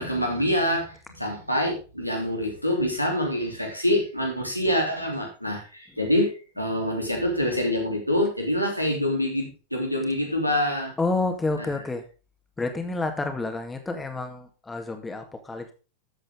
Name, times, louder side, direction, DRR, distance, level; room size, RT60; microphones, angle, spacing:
voice 1, 0.0-10.9, left 1 dB, 90° left, 0 dB, 3.3 m, -26 dB
voice 2, 11.0-12.0 12.6-15.7, left 3 dB, 10° left, 6 dB, 2.0 m, -29 dB
13.5 x 7.6 x 3.8 m, 0.34 s
figure-of-eight pair, 90°, 0 cm